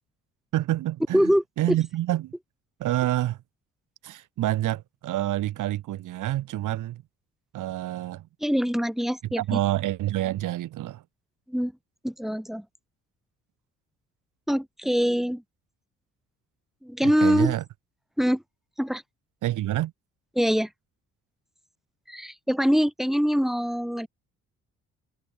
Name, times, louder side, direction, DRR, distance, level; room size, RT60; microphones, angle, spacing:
voice 1, 0.5-2.3 2.8-3.4 4.0-7.0 7.5-8.3 9.4-11.0 17.0-17.6 19.4-19.9, right 14 dB, 85° right, 5.2 m, -27 dB
voice 2, 1.1-1.8 8.4-9.6 11.5-11.7 12.0-12.7 14.5-15.4 16.8-17.6 18.2-18.4 18.8-19.0 20.4-20.7 22.1-24.1, equal, ahead, 6.1 m, -24 dB
cardioid pair, 90°, 30 cm